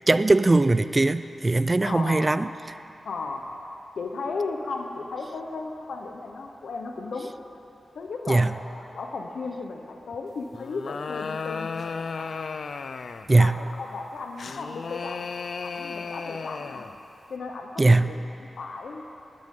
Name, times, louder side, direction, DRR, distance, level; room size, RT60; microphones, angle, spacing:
voice 1, 0.1-2.8 8.3-8.6 13.3-13.6 17.8-18.2, right 2 dB, 30° right, 13 dB, 0.4 m, -20 dB
voice 2, 1.8-2.3 3.0-3.5 4.0-7.3 7.9-8.4 8.7-12.3 13.4-15.3 15.6-16.8 17.3-18.2 18.6-19.0, left 3 dB, 90° left, 2 dB, 0.9 m, -35 dB
sound 1, 10.5-13.4 14.4-17.0, left 5 dB, 70° left, 0.6 m, -34 dB
20.0 x 15.5 x 3.8 m, 2.8 s
wide cardioid pair, 90°, 0 cm